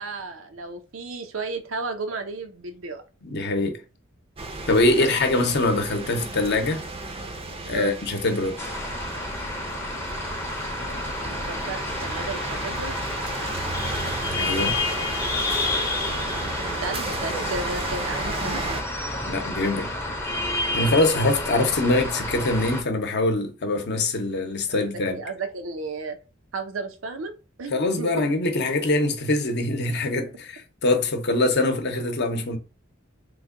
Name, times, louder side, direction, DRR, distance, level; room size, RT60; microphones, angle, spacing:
voice 1, 0.0-3.0 5.0-5.2 7.7-8.0 11.3-13.0 15.0-15.1 16.1-18.6 24.7-26.2 26.5-27.3 27.6-28.2, right 3 dB, 85° right, 0.6 m, -34 dB
voice 2, 3.2-3.8 4.7-6.9 7.7-8.6 14.3-14.8 19.3-19.9 20.7-25.2 27.7-32.6, left 2 dB, 60° left, 0.7 m, -23 dB
sound 1, 4.4-18.8, right 2 dB, 30° right, 0.5 m, -33 dB
sound 2, 8.6-22.8, left 2 dB, 15° left, 0.6 m, -30 dB
3.2 x 2.2 x 3.7 m
head